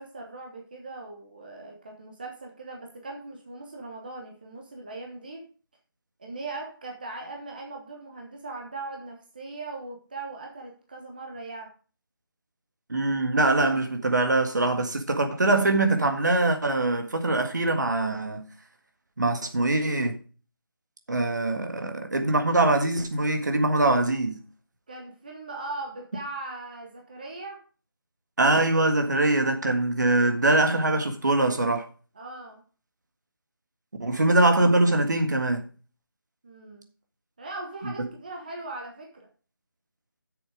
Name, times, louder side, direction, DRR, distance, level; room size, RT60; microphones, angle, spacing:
voice 1, 0.0-5.5 6.2-11.7 24.9-27.7 32.1-32.6 36.4-36.9 37.4-39.3, right 2 dB, 25° right, 1.1 m, -39 dB
voice 2, 12.9-18.5 19.2-20.2 21.1-24.4 28.4-31.9 34.0-35.6 37.8-38.1, right 2 dB, 50° right, 1.7 m, -23 dB
8.9 x 6.9 x 4.9 m
figure-of-eight pair, 175°, 12 cm